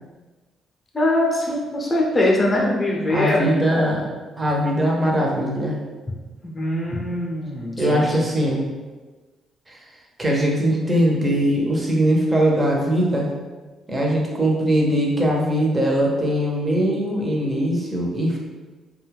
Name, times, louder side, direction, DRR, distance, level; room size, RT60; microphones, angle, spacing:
voice 1, 0.9-4.0 6.4-8.3, left 1 dB, 25° left, -1 dB, 0.7 m, -22 dB
voice 2, 3.1-4.0 4.4-5.8 7.8-8.6 9.7-9.8 10.2-13.3 13.9-18.4, equal, 20° right, -2 dB, 0.7 m, -21 dB
2.6 x 2.3 x 3.4 m, 1.3 s
cardioid pair, 90°, 0 cm